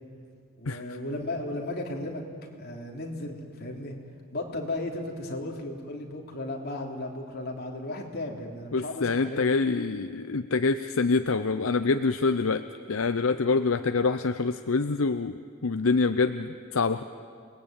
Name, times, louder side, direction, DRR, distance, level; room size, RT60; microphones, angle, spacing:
voice 1, 0.6-2.2 2.6-4.0 4.3-9.4, left 2 dB, 45° left, 0 dB, 3.4 m, -35 dB
voice 2, 8.7-12.6 12.9-17.0, left 4 dB, 70° left, 10 dB, 0.7 m, -26 dB
28.5 x 20.0 x 9.0 m, 2.2 s
head